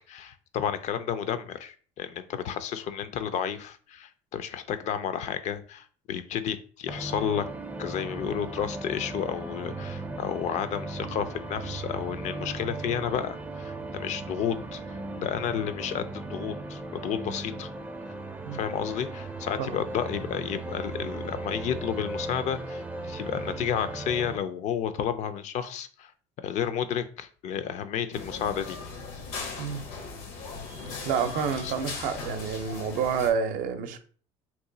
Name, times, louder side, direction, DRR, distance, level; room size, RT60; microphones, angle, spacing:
voice 1, 0.1-7.5 7.8-17.7 18.5-26.1 26.4-28.8 31.6-31.7, left 8 dB, 55° left, 11 dB, 0.4 m, -31 dB
sound 1, 6.9-24.4, right 2 dB, 10° right, 0.4 m, -37 dB
sound 2, 28.1-33.3, left 4 dB, 85° left, 0.8 m, -38 dB
voice 2, 31.0-34.0, right 7 dB, 75° right, 8 dB, 0.6 m, -29 dB
2.9 x 2.3 x 3.8 m, 0.42 s
supercardioid pair, 100°, 14 cm